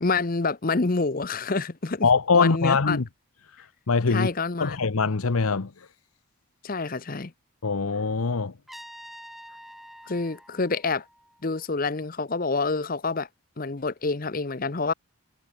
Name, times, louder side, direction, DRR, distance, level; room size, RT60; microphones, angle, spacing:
voice 1, 0.0-2.1 2.3-3.0 4.1-4.8 6.6-7.3 10.1-11.0 11.4-13.3 13.6-14.9, left 3 dB, 40° left, 0.8 m, -27 dB
voice 2, 2.0-3.0 3.5-4.3 4.6-5.9 7.6-8.5, left 4 dB, 85° left, 0.9 m, -23 dB
Trumpet, 8.7-11.6, equal, ahead, 4.6 m, -47 dB
head